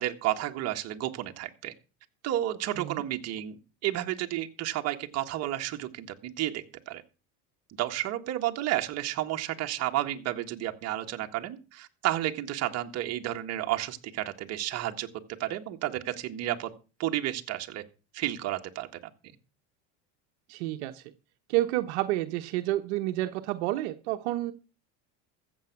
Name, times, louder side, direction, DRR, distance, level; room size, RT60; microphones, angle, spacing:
voice 1, 0.0-1.7 2.2-7.0 7.8-15.1 15.4-16.7 17.0-17.8 18.1-18.9, right 14 dB, 45° right, 4 dB, 1.7 m, -31 dB
voice 2, 20.5-21.0 21.5-24.5, right 16 dB, 75° right, 7 dB, 1.2 m, -29 dB
14.5 x 7.5 x 6.0 m, 0.33 s
supercardioid pair, 120°, 34 cm